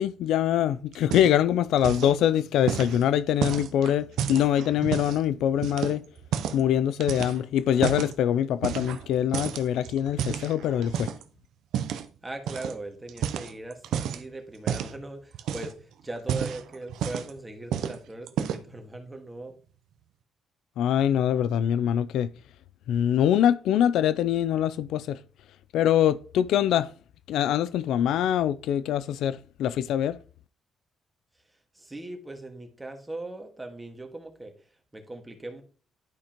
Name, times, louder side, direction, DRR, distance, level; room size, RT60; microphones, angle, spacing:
voice 1, 0.0-6.0 6.5-11.1 20.8-22.3 22.9-25.2 25.7-26.9 27.3-30.2, left 10 dB, 85° left, 0.3 m, -24 dB
sound 1, 0.9-1.5 1.8-2.2 2.7-5.2 5.6-6.7 7.0-8.1 8.6-9.1 9.3-11.2 11.7-12.1 12.5-12.7 13.1-14.2 14.7-15.0 15.3-15.8 16.2-17.4 17.7-18.0 18.3-18.7, right 9 dB, 80° right, 0.6 m, -31 dB
voice 2, 12.2-19.5 31.5-35.6, right 2 dB, 15° right, 1.6 m, -40 dB
11.0 x 4.9 x 2.9 m
cardioid pair, 90°, 0 cm